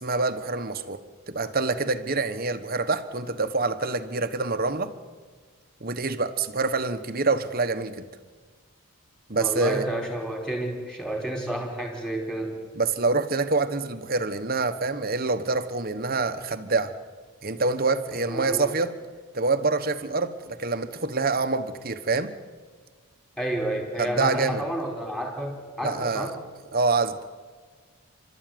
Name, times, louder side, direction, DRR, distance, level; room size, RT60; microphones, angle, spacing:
voice 1, 0.0-4.9 5.8-8.0 9.3-9.8 12.8-16.9 17.4-18.9 19.3-22.3 24.0-24.6 25.8-26.3 26.7-27.2, right 3 dB, 40° right, 1.2 m, -26 dB
voice 2, 9.3-12.6 18.3-18.7 23.4-26.4, right 1 dB, 5° left, 4.5 m, -30 dB
30.0 x 13.0 x 9.3 m
head